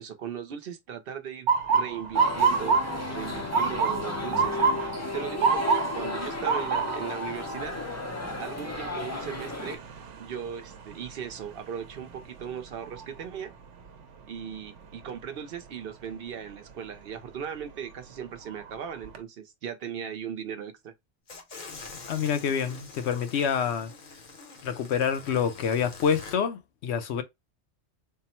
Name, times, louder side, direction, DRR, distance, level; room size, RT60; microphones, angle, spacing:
voice 1, 0.0-2.8 3.1-7.8 8.4-9.8 10.2-13.5 14.3-20.9, right 8 dB, 60° right, 0.8 m, -38 dB
Motor vehicle (road) / Siren, 1.5-13.4 13.8-14.3 15.0-15.3 17.2-17.5 18.0-18.1 18.5-19.2, right 5 dB, 85° right, 1.0 m, -29 dB
sound 1, 2.1-9.8, left 3 dB, 20° left, 0.4 m, -34 dB
sound 2, 21.3-26.4, left 4 dB, 45° left, 0.8 m, -45 dB
voice 2, 22.1-23.9 24.6-27.2, left 7 dB, 70° left, 0.9 m, -27 dB
3.7 x 2.0 x 4.2 m
omnidirectional pair, 1.2 m